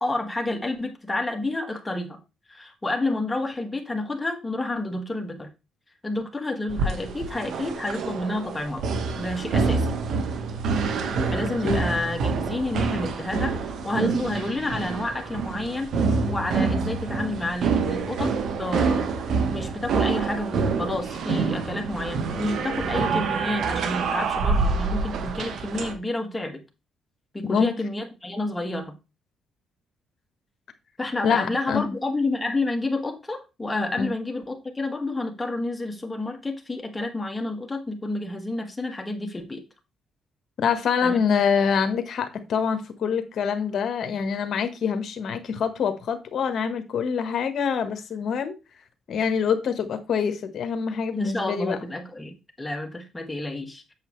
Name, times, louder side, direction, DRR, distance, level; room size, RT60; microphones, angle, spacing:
voice 1, 0.0-2.2 2.5-5.5 6.0-8.8 9.1-10.0 11.3-15.9 16.3-19.1 19.5-26.6 27.3-29.0 31.0-39.6 41.0-41.2 51.1-53.9, left 2 dB, 15° left, 1.8 m, -29 dB
sound 1, 6.7-25.9, right 4 dB, 70° right, 1.3 m, -26 dB
voice 2, 31.2-31.9 34.0-34.1 40.6-48.5 49.1-51.8, left 6 dB, 60° left, 1.4 m, -25 dB
8.1 x 6.8 x 3.2 m
cardioid pair, 90°, 0 cm